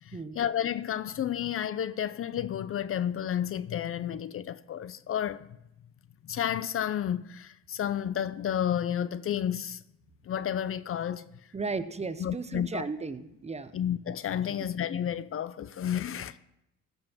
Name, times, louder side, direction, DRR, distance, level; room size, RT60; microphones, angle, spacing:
voice 1, 0.0-5.5 6.2-9.8 10.2-11.3 12.2-12.8 13.7-16.4, left 9 dB, 45° left, 0.5 m, -31 dB
voice 2, 11.5-13.7 14.5-14.7, right 4 dB, 20° right, 0.7 m, -35 dB
14.5 x 5.4 x 6.0 m
cardioid pair, 90°, 30 cm